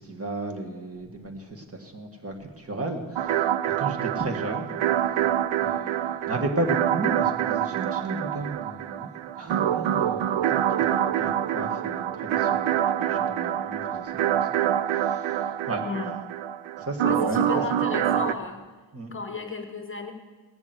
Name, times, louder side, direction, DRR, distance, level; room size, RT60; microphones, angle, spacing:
voice 1, 0.0-3.5 3.8-4.8 5.6-9.1 9.4-14.1 14.7-15.8 16.8-17.4 18.9-19.1, right 2 dB, 30° right, 3 dB, 1.8 m, -34 dB
sound 1, 3.2-18.3, right 10 dB, 75° right, 0.7 m, -26 dB
voice 2, 17.0-18.6 19.1-20.1, left 5 dB, 25° left, 5 dB, 1.1 m, -33 dB
17.5 x 7.1 x 8.0 m, 1.3 s
cardioid pair, 125°, 47 cm